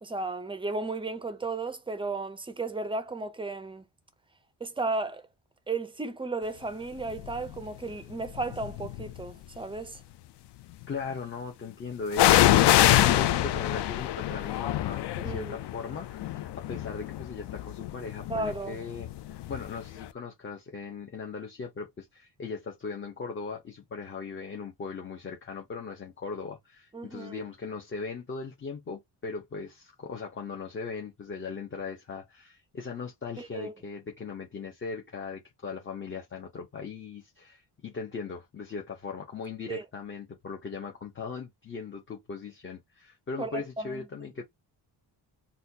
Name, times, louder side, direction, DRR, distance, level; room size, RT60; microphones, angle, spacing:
voice 1, 0.0-3.8 4.6-5.3 5.7-10.0 15.2-15.6 18.3-18.8 26.9-27.4 33.4-33.7 39.7-39.8 43.4-44.0, right 3 dB, 15° right, 0.4 m, -34 dB
sound 1, 7.2-7.5 8.3-9.2 12.1-19.8 20.0-20.1, left 13 dB, 65° left, 0.5 m, -25 dB
voice 2, 10.9-44.4, left 5 dB, 30° left, 0.7 m, -39 dB
4.1 x 2.3 x 2.7 m
wide cardioid pair, 150°, 43 cm